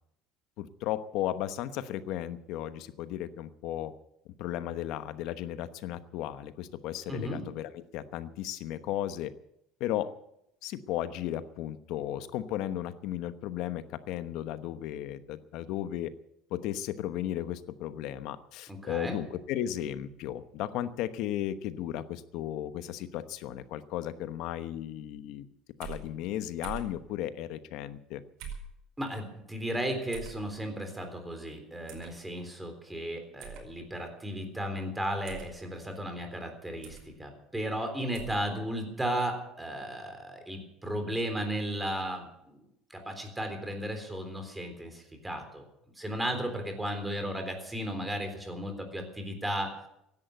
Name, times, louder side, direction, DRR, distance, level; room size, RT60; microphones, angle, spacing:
voice 1, 0.6-4.0 4.4-9.3 9.8-10.1 10.6-16.1 16.5-25.5 25.8-28.2 38.5-38.6, left 12 dB, 65° left, 12 dB, 1.0 m, -35 dB
voice 2, 7.1-7.4 18.7-19.2 29.0-42.6 42.9-45.6 46.0-49.7, equal, 10° right, 5 dB, 3.7 m, -35 dB
sound 1, 25.8-26.0 26.6-26.9 28.4-28.7 30.1-30.4 31.9-32.1 33.4-33.6 35.2-35.5 36.8-37.1 38.1-38.4, right 6 dB, 70° right, 5.2 m, -42 dB
16.0 x 11.0 x 8.1 m, 0.81 s
cardioid pair, 135°, 0 cm